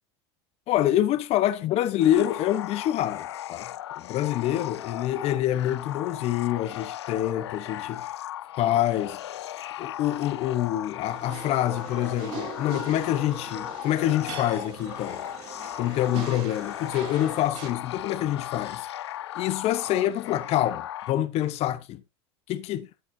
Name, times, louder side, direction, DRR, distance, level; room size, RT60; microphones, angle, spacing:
voice 1, 0.7-3.7 4.0-8.1 8.6-9.2 9.8-15.3 15.8-18.9 19.3-22.0 22.5-22.9, left 12 dB, 50° left, 1.0 m, -26 dB
sound 1, 2.0-21.1, left 13 dB, 90° left, 0.5 m, -37 dB
sound 2, 11.1-17.7, right 6 dB, 55° right, 4.6 m, -41 dB
12.5 x 8.4 x 2.7 m
hypercardioid pair, 95°, 14 cm